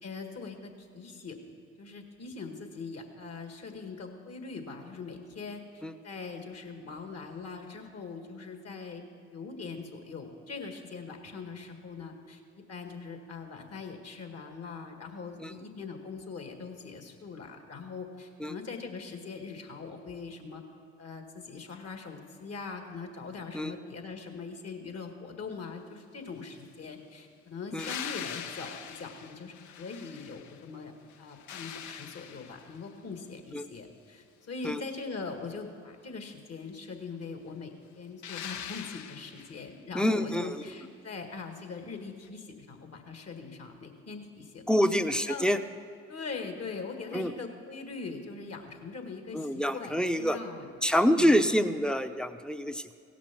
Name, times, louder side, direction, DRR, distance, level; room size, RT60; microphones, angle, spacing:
voice 1, 0.0-1.5 1.8-9.0 9.3-20.6 21.0-30.9 31.2-45.0 45.3-45.5 46.1-50.8 51.0-51.4, left 4 dB, 50° left, 5 dB, 1.8 m, -42 dB
sound 1, 27.8-30.7 31.1-32.9 38.2-39.7 42.2-42.3, left 9 dB, 65° left, 0.7 m, -42 dB
voice 2, 39.9-40.6 44.7-45.6 47.1-47.3 49.3-50.4 50.8-52.9, equal, 5° left, 9 dB, 0.6 m, -26 dB
17.0 x 6.1 x 5.9 m, 2.2 s
hypercardioid pair, 50°, 31 cm